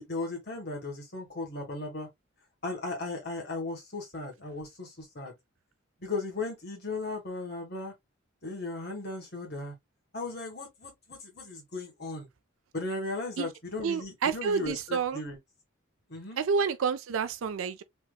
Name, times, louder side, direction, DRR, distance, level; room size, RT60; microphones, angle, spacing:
voice 1, 0.0-2.1 2.6-5.3 6.0-7.9 8.4-9.7 10.1-12.3 12.7-15.4 16.1-16.4, left 3 dB, 50° left, 1.5 m, -36 dB
voice 2, 13.8-15.2 16.4-17.8, right 5 dB, 75° right, 0.4 m, -29 dB
3.4 x 2.9 x 2.3 m
head